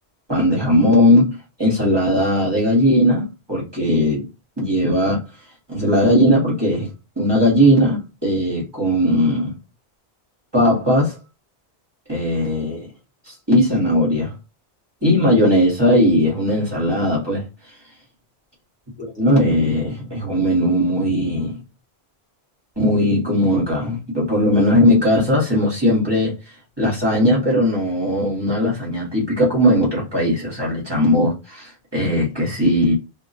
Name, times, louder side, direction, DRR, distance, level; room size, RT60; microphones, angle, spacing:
voice 1, 0.3-4.3 4.6-5.2 5.7-6.9 7.2-9.5 10.5-11.2 12.1-12.9 13.2-14.3 15.0-17.5 19.0-21.6 22.8-26.3 26.8-33.0, equal, 25° right, 1.0 m, -18 dB
2.3 x 2.2 x 3.9 m
omnidirectional pair, 1.1 m